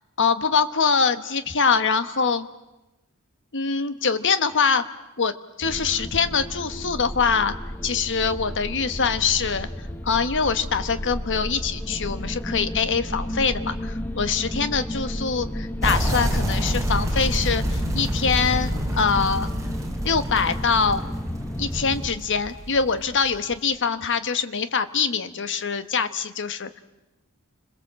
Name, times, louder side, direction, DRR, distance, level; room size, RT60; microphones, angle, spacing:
voice 1, 0.2-2.5 3.5-4.8 5.2-7.5 7.8-9.7 10.0-19.5 20.0-21.0 21.6-26.8, left 5 dB, 55° left, 11 dB, 1.3 m, -24 dB
sound 1, 5.6-22.1, equal, 10° left, 1.2 m, -33 dB
sound 2, 15.8-23.5, equal, 15° right, 3.9 m, -28 dB
29.5 x 22.0 x 7.6 m, 0.99 s
head